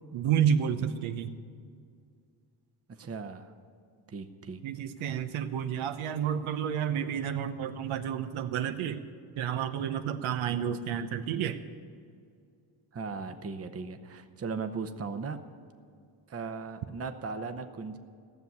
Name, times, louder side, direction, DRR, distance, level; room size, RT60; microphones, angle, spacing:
voice 1, 0.1-1.4 4.6-9.0 9.4-11.6, right 8 dB, 85° right, 8 dB, 0.9 m, -30 dB
voice 2, 3.0-3.5 4.1-4.6 12.9-15.4 16.3-18.0, right 4 dB, 30° right, 8 dB, 0.9 m, -37 dB
16.0 x 7.1 x 9.4 m, 2.2 s
cardioid pair, 110°, 48 cm